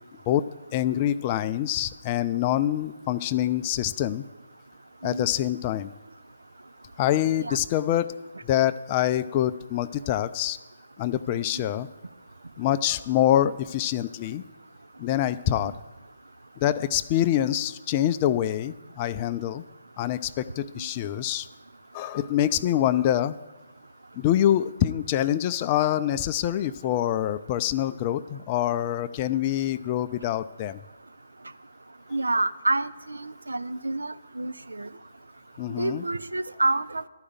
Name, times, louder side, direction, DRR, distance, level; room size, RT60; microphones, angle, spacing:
voice 1, 0.7-4.2 5.0-5.9 7.0-8.1 8.4-10.6 11.0-11.9 12.6-14.4 15.0-15.7 16.6-19.6 20.0-21.5 21.9-23.4 24.2-30.8 35.6-36.0, left 12 dB, 30° left, 13 dB, 0.4 m, -25 dB
voice 2, 32.1-34.9 35.8-37.1, right 2 dB, 75° right, 13 dB, 0.4 m, -28 dB
12.0 x 4.9 x 8.7 m, 1.1 s
figure-of-eight pair, 135°, 0 cm